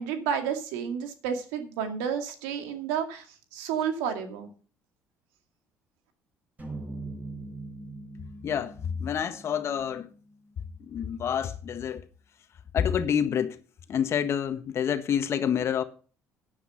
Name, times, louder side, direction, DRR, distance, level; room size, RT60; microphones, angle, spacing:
voice 1, 0.0-3.3 3.5-4.5, right 7 dB, 85° right, 2.2 m, -31 dB
sound 1, 6.6-10.9, right 2 dB, 30° right, 6.0 m, -42 dB
voice 2, 8.4-10.1 10.8-12.0 12.7-13.6 13.9-15.8, left 8 dB, 50° left, 1.5 m, -28 dB
10.0 x 9.7 x 5.6 m
supercardioid pair, 75°, 6 cm